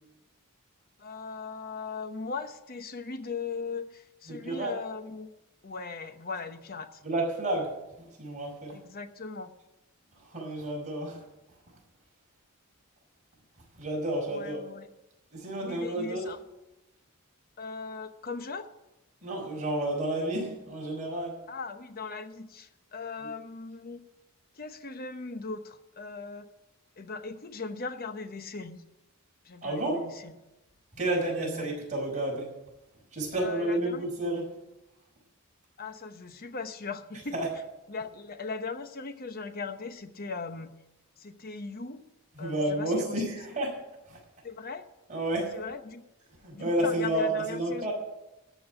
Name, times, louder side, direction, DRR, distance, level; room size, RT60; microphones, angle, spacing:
voice 1, 1.0-5.3 5.6-7.0 8.7-9.5 14.3-14.9 15.6-16.4 17.6-18.7 21.5-24.0 24.6-26.5 27.0-28.8 29.4-30.3 30.9-31.7 33.3-34.1 35.8-37.4 37.9-40.7 41.2-42.0 42.4-43.4 44.4-44.8 45.5-46.0 46.5-47.9, left 4 dB, 45° left, 10 dB, 0.9 m, -39 dB
voice 2, 4.3-4.8 7.0-8.8 10.2-11.2 13.8-14.6 15.3-16.3 19.2-21.4 23.2-23.3 29.6-30.1 31.0-32.5 33.1-34.5 37.3-37.5 42.4-43.8 44.1-44.2 45.1-45.5 46.4-47.9, right 1 dB, 35° right, -2 dB, 5.5 m, -31 dB
14.0 x 6.2 x 10.0 m, 0.97 s
head